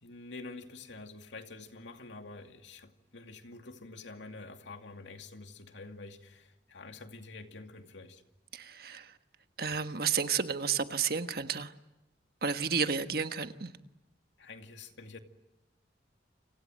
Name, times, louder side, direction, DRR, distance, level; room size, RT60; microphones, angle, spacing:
voice 1, 0.0-8.2 14.4-15.2, left 3 dB, 80° left, 2.4 m, -47 dB
voice 2, 8.5-9.1 9.6-11.7 12.4-13.7, right 6 dB, 55° right, 1.4 m, -31 dB
29.5 x 26.0 x 7.7 m
head